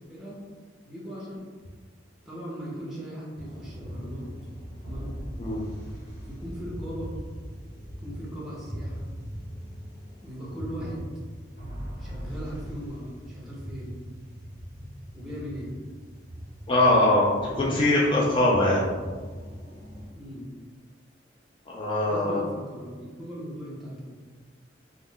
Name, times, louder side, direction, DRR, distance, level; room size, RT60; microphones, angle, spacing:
voice 1, 0.1-0.4 0.8-1.4 2.2-4.3 4.8-5.1 6.2-7.1 8.0-9.1 10.2-11.1 12.0-13.9 15.1-15.7 17.5-17.8 20.1-20.5 22.1-24.1, equal, ahead, -6 dB, 0.7 m, -39 dB
sound 1, 3.3-20.1, equal, 45° left, 1.2 m, -40 dB
voice 2, 16.7-18.8 21.7-22.4, left 1 dB, 30° left, -5 dB, 0.3 m, -22 dB
2.3 x 2.0 x 3.6 m, 1.5 s
head